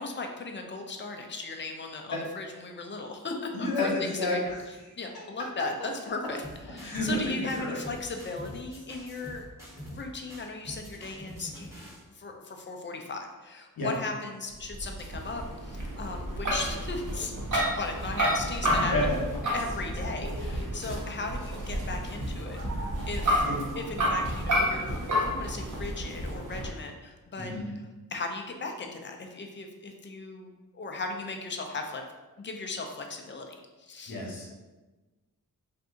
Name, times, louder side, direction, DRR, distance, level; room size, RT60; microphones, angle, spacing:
voice 1, 0.0-4.4 4.7-6.4 6.7-9.4 9.9-11.7 12.1-18.9 19.5-22.6 23.1-23.5 23.8-27.9 28.1-32.0 32.4-34.2, left 3 dB, 35° left, 3 dB, 0.5 m, -37 dB
voice 2, 3.5-4.5 5.8-5.9 6.8-7.8 13.8-13.9 18.8-19.2 23.4-23.6 27.5-27.6 34.1-34.5, left 1 dB, 90° left, -2 dB, 0.9 m, -30 dB
sound 1, 6.4-7.2 7.5-10.0 10.3-12.0, equal, 10° right, 1.4 m, -44 dB
sound 2, 14.6-26.7, equal, 55° right, 0.9 m, -30 dB
2.7 x 2.5 x 3.6 m, 1.2 s
cardioid pair, 65°, 35 cm